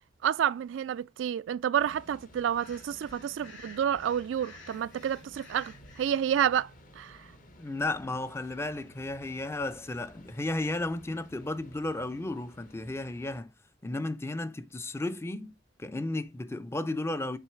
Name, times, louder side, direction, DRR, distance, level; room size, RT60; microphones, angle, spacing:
voice 1, 0.2-6.7 7.0-7.2, right 9 dB, 85° right, 0.3 m, -29 dB
sound 1, 1.8-13.4, equal, 45° left, 1.0 m, -55 dB
Breathing, 2.5-6.2, left 3 dB, 80° left, 1.9 m, -52 dB
voice 2, 7.6-13.5 13.8-15.5 15.8-17.4, left 2 dB, 15° left, 0.4 m, -33 dB
7.7 x 3.1 x 4.5 m
head